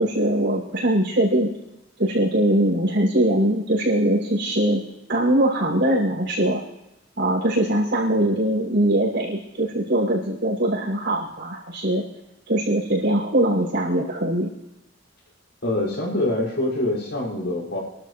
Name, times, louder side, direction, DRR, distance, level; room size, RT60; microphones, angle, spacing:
voice 1, 0.0-1.5 2.0-4.8 5.1-6.6 7.2-12.0 12.5-14.5, right 1 dB, 65° right, -4 dB, 6.2 m, -21 dB
voice 2, 15.6-17.8, left 1 dB, 70° left, -3 dB, 5.9 m, -25 dB
29.5 x 12.5 x 3.3 m, 0.93 s
head